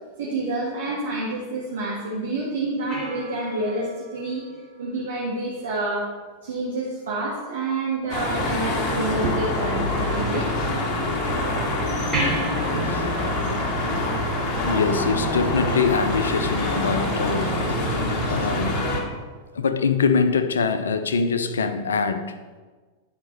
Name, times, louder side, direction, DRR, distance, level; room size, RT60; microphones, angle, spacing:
voice 1, 0.2-4.4 4.8-6.1 6.4-10.6, right 2 dB, 60° right, -5 dB, 1.7 m, -28 dB
sound 1, 2.9-5.5 8.4-9.3 12.1-15.0 18.1-18.2, right 1 dB, 15° right, 3.1 m, -34 dB
sound 2, 8.1-19.0, left 1 dB, 30° left, 2.0 m, -25 dB
voice 2, 12.8-13.1 14.6-17.8 18.3-18.9 19.5-22.4, left 5 dB, 70° left, 10 dB, 0.6 m, -24 dB
10.5 x 5.2 x 4.5 m, 1.4 s
figure-of-eight pair, 90°, 0 cm